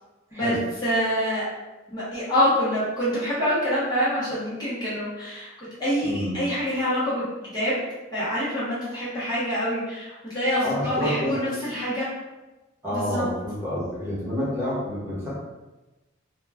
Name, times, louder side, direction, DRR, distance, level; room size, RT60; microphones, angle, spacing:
voice 1, 0.8-1.5 1.9-7.2 7.5-7.8 8.1-12.1 12.9-13.2, equal, 20° left, -10 dB, 0.7 m, -26 dB
voice 2, 6.0-6.4 10.6-11.5 12.8-15.3, equal, 10° right, -9 dB, 0.9 m, -28 dB
2.2 x 2.2 x 3.3 m, 1.1 s
head